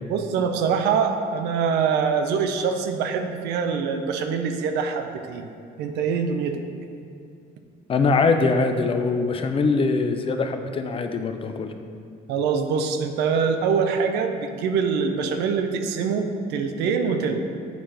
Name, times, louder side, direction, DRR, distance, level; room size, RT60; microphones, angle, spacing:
voice 1, 0.1-5.5 5.8-6.6 12.3-17.4, right 6 dB, 85° right, 6 dB, 0.6 m, -24 dB
voice 2, 7.9-11.7, left 4 dB, 35° left, 6 dB, 0.5 m, -22 dB
9.3 x 4.3 x 3.3 m, 2.5 s
cardioid pair, 110°, 17 cm